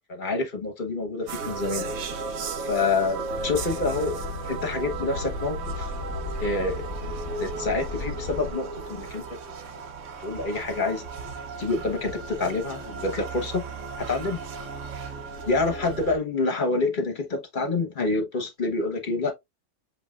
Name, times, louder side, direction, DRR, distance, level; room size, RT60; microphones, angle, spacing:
voice 1, 0.1-1.9 2.6-4.2 4.4-5.9 6.4-6.8 7.4-9.2 10.2-11.3 11.6-13.6 14.0-14.4 15.5-19.3, left 3 dB, 45° left, 1.1 m, -27 dB
sound 1, 1.3-16.2, right 4 dB, 80° right, 1.1 m, -35 dB
sound 2, 3.3-8.5, left 6 dB, 60° left, 0.8 m, -36 dB
7.7 x 2.9 x 2.3 m
omnidirectional pair, 1.3 m